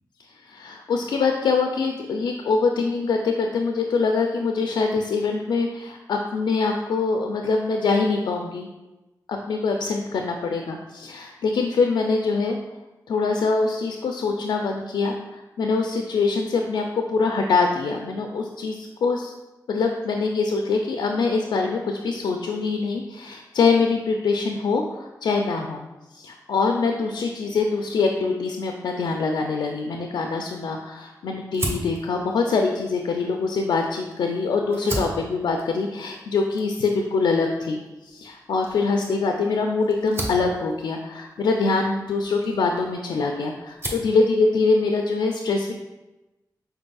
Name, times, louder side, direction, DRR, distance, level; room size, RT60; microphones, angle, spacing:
voice 1, 0.4-8.7 9.3-12.6 13.1-19.3 19.7-25.8 26.1-45.7, left 4 dB, 85° left, 2 dB, 0.3 m, -24 dB
Fire, 31.5-34.1 34.6-43.2 43.6-44.2, right 1 dB, 35° right, 1.1 m, -36 dB
5.2 x 3.9 x 2.3 m, 1.1 s
cardioid pair, 55°, 7 cm